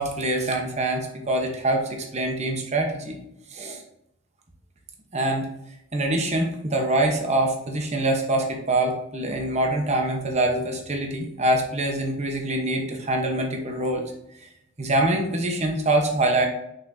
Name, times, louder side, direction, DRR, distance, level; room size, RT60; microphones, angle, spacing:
voice 1, 0.0-3.2 3.5-3.8 5.1-5.5 5.9-14.0 14.8-16.5, right 1 dB, 30° right, 2 dB, 0.9 m, -24 dB
6.2 x 5.7 x 2.7 m, 0.81 s
head